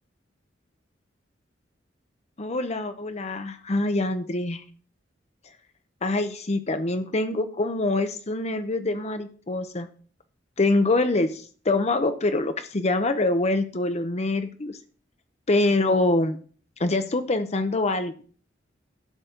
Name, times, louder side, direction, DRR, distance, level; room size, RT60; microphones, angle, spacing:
voice 1, 2.4-4.6 6.0-9.9 10.6-14.8 15.5-16.4 16.8-18.1, left 2 dB, 35° left, 9 dB, 0.7 m, -25 dB
12.0 x 4.1 x 8.0 m, 0.43 s
head